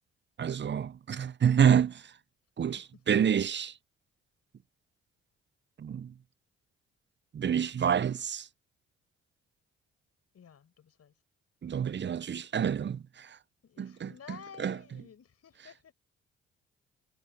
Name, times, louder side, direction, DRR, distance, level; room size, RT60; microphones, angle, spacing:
voice 1, 0.4-2.1 2.6-3.7 5.8-6.1 7.3-8.5 11.6-13.4 13.8-14.1 14.6-14.7, right 8 dB, 35° right, 0.8 m, -28 dB
voice 2, 2.6-3.0 10.3-11.1 13.6-15.9, left 7 dB, 55° left, 5.3 m, -52 dB
hypercardioid pair, 50°, 30 cm